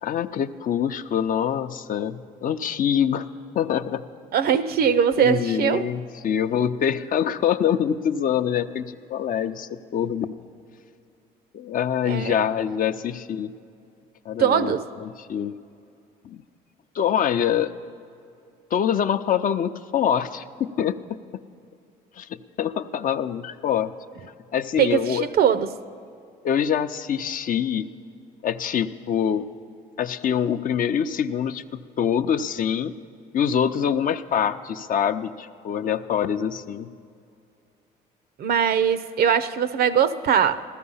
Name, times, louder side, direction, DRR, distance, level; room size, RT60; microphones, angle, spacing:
voice 1, 0.0-3.3 3.5-4.1 5.2-10.4 11.5-13.5 14.3-15.5 16.2-16.4 16.9-17.7 18.7-21.0 22.1-23.9 24.5-25.3 26.4-27.9 28.4-29.5 30.0-33.0 33.3-36.9, left 8 dB, 50° left, 9 dB, 0.6 m, -25 dB
voice 2, 4.3-5.8 12.1-12.3 14.4-14.9 24.8-25.7 38.4-40.6, right 8 dB, 60° right, 14 dB, 0.6 m, -21 dB
15.0 x 13.5 x 5.5 m, 2.4 s
supercardioid pair, 80°, 18 cm